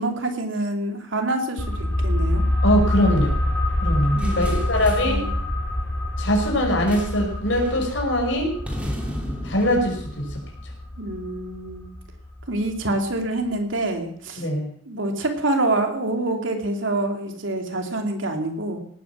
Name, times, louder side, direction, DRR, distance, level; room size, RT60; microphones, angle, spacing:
voice 1, 0.0-2.4 4.1-5.3 11.0-11.9 12.5-14.4 14.9-18.8, right 2 dB, 80° right, 4 dB, 2.8 m, -26 dB
sound 1, 1.6-12.9 13.2-13.3, left 1 dB, 10° left, 4.0 m, -26 dB
voice 2, 2.6-3.4 3.8-5.2 6.2-8.5 9.4-10.4 14.4-14.7, equal, 75° left, 2 dB, 5.6 m, -22 dB
sound 2, 4.2-5.2 6.9-7.3 7.6-7.8 8.6-11.0, equal, 5° right, 2.6 m, -35 dB
18.0 x 9.6 x 7.3 m, 0.64 s
head